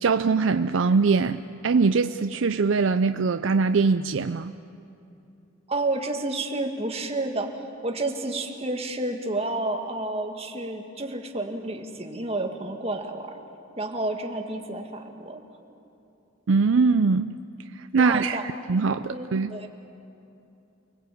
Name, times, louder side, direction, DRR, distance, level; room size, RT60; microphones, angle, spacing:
voice 1, 0.0-4.5 16.5-17.3 17.7-19.5, right 4 dB, 70° right, 9 dB, 0.5 m, -22 dB
voice 2, 5.7-13.2 13.8-15.4 17.9-18.4 19.1-19.7, right 2 dB, 30° right, 3 dB, 2.1 m, -30 dB
29.5 x 21.0 x 8.6 m, 2.8 s
head